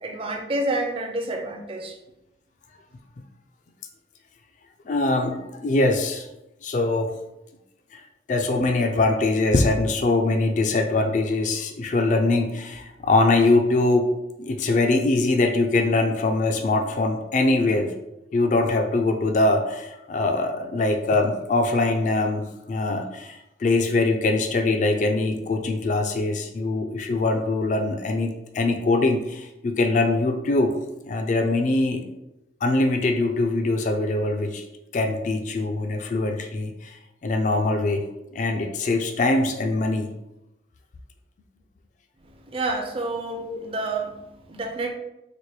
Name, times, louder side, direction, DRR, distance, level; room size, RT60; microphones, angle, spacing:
voice 1, 0.0-2.0 42.5-44.9, right 2 dB, 30° right, 3 dB, 0.4 m, -29 dB
voice 2, 4.9-6.3 6.6-7.1 7.9-8.0 8.3-14.1 14.4-17.9 18.3-30.8 31.0-32.0 32.6-34.6 34.9-36.9 37.2-38.0 38.3-40.1 43.5-43.6, left 2 dB, 40° left, 4 dB, 0.3 m, -22 dB
4.2 x 2.1 x 3.1 m, 0.90 s
head